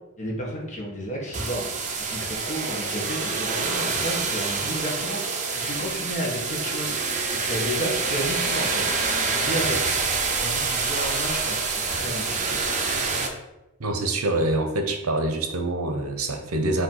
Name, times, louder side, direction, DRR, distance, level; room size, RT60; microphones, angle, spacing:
voice 1, 0.2-1.7 2.1-7.1 7.4-8.8 9.2-10.0 10.4-12.6, equal, 35° left, -2 dB, 1.4 m, -32 dB
sound 1, 1.3-13.3, right 4 dB, 35° right, 0.7 m, -26 dB
voice 2, 13.8-16.8, right 2 dB, 70° right, 5 dB, 0.8 m, -25 dB
5.4 x 3.2 x 5.5 m, 0.97 s
head